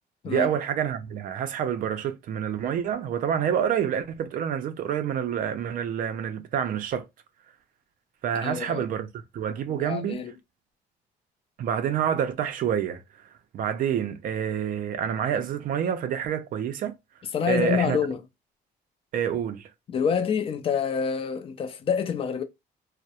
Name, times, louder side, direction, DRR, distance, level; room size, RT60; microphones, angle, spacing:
voice 1, 0.3-7.1 8.2-9.1 9.3-10.2 11.6-13.0 13.5-17.0 17.5-18.0 19.1-19.7, right 8 dB, 55° right, 0.4 m, -27 dB
voice 2, 8.4-8.8 9.7-10.3 17.3-18.2 19.9-22.4, left 7 dB, 35° left, 0.4 m, -27 dB
2.2 x 2.0 x 2.7 m
cardioid pair, 110°, 17 cm